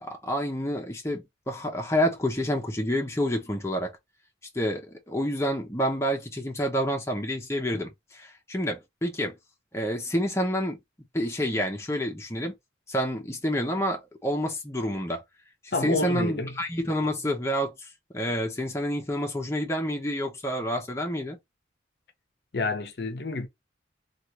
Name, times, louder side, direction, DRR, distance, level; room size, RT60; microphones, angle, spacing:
voice 1, 0.0-3.9 4.5-9.3 9.7-10.8 11.1-12.5 12.9-15.2 15.6-17.9 18.1-21.4, equal, 15° left, 0.7 m, -28 dB
voice 2, 15.7-16.5 22.5-23.5, left 3 dB, 55° left, 0.6 m, -28 dB
3.3 x 2.4 x 2.8 m
head